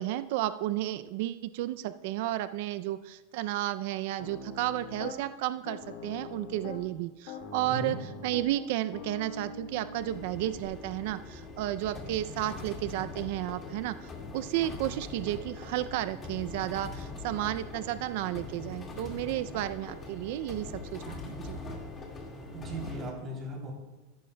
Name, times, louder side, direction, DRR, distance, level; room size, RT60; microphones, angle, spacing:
voice 1, 0.0-21.6, right 14 dB, 60° right, 13 dB, 0.3 m, -32 dB
Piano, 4.2-5.2 5.6-6.9 7.3-10.7, left 4 dB, 55° left, 1.8 m, -43 dB
voice 2, 7.6-8.0 22.5-23.7, right 1 dB, 30° right, 0 dB, 2.9 m, -38 dB
sound 1, 10.0-23.1, left 3 dB, 20° left, 1.9 m, -42 dB
14.0 x 11.0 x 2.2 m, 1.1 s
supercardioid pair, 145°, 0 cm